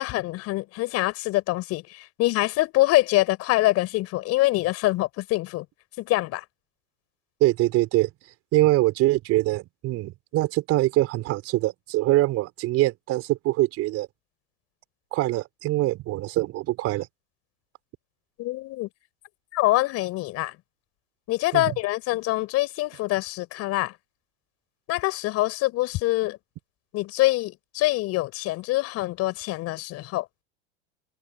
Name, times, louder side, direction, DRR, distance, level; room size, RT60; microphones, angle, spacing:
voice 1, 0.0-5.7 6.0-6.4 18.4-18.9 19.5-20.6 21.3-23.9 24.9-26.4 26.9-30.3, left 18 dB, 50° left, 5.7 m, -25 dB
voice 2, 7.4-8.1 8.5-14.1 15.1-17.1 21.5-21.8, right 17 dB, 50° right, 5.7 m, -23 dB
hypercardioid pair, 100°, 32 cm